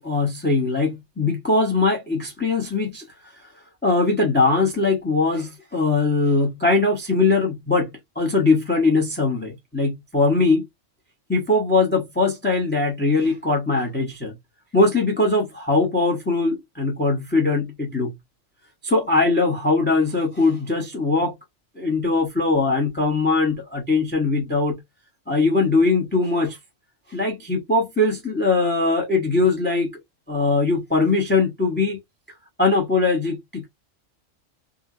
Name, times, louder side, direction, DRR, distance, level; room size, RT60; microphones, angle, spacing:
voice 1, 0.0-3.0 3.8-7.9 8.2-10.6 11.3-14.3 14.7-18.1 18.8-21.3 21.8-24.8 25.3-26.6 27.1-29.9 30.3-32.0 32.6-33.7, left 3 dB, 10° left, 0.7 m, -21 dB
3.7 x 2.2 x 2.4 m
omnidirectional pair, 1.3 m